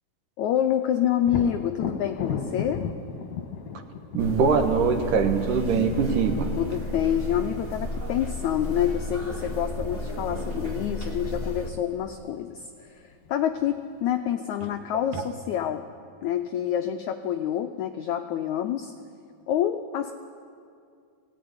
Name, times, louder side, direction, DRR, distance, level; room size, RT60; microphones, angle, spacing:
voice 1, 0.4-2.8 6.5-13.0 13.3-15.9 16.2-18.9 19.5-20.1, left 10 dB, 90° left, 7 dB, 1.6 m, -27 dB
Thunder, 1.2-8.9 12.5-12.6 13.1-14.0, left 6 dB, 60° left, 2.1 m, -36 dB
voice 2, 4.1-6.5 15.1-15.2, right 5 dB, 65° right, 6 dB, 2.7 m, -22 dB
sound 1, 4.2-11.7, left 1 dB, 20° right, 1.9 m, -33 dB
20.0 x 16.0 x 9.5 m, 2.3 s
omnidirectional pair, 4.3 m